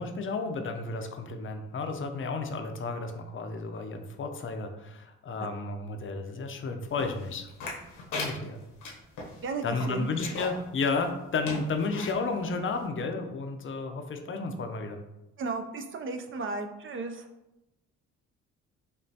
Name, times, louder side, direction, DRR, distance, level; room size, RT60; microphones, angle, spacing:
voice 1, 0.0-7.5 8.1-8.6 9.6-15.0, left 4 dB, 45° left, 5 dB, 0.5 m, -32 dB
sound 1, 7.0-10.6 11.0-11.1 11.4-12.2 12.8-12.9, left 2 dB, 90° left, 1.0 m, -38 dB
voice 2, 9.4-10.1 15.4-17.3, right 4 dB, 45° right, 6 dB, 0.4 m, -34 dB
5.2 x 2.4 x 2.7 m, 0.92 s
cardioid pair, 90°, 30 cm